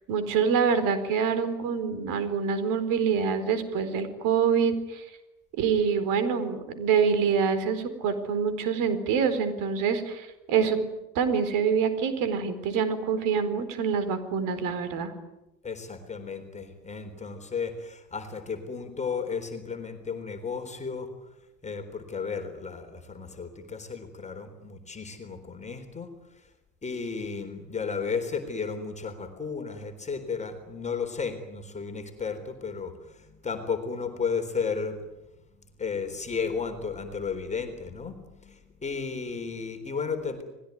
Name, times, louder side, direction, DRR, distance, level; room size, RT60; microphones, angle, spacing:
voice 1, 0.1-5.0 5.6-10.8 11.1-15.1, right 6 dB, 40° right, 11 dB, 4.5 m, -26 dB
voice 2, 15.6-21.1 21.6-26.5 26.8-35.0 35.8-40.4, left 5 dB, 15° left, 6 dB, 3.9 m, -34 dB
30.0 x 20.5 x 9.5 m, 0.97 s
figure-of-eight pair, 90°, 49 cm